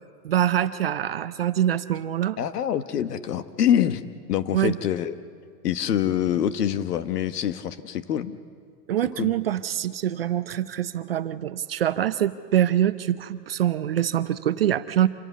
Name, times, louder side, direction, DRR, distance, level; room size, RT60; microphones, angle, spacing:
voice 1, 0.2-2.4 4.5-4.8 8.9-15.1, right 11 dB, 40° right, 13 dB, 0.5 m, -24 dB
voice 2, 2.4-4.0 4.3-5.2 5.6-8.4 9.2-9.3, left 10 dB, 70° left, 12 dB, 1.2 m, -25 dB
26.5 x 16.5 x 8.3 m, 2.3 s
hypercardioid pair, 160°, 48 cm